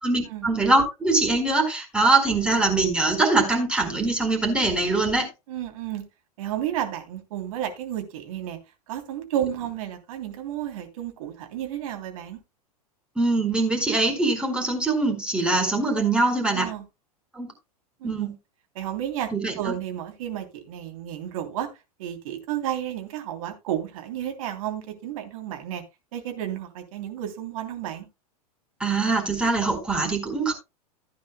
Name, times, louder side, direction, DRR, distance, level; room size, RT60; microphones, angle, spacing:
voice 1, 0.0-5.3 13.2-16.7 17.3-17.5 18.0-18.3 19.3-19.7 28.8-30.5, right 3 dB, 5° right, 4.4 m, -23 dB
voice 2, 5.5-6.0 6.4-8.6 8.9-12.4 16.5-16.8 18.0-18.3 18.7-19.3 19.6-21.7 22.0-25.8 26.1-28.1, right 11 dB, 60° right, 3.0 m, -32 dB
15.5 x 9.5 x 2.2 m
hypercardioid pair, 100°, 20 cm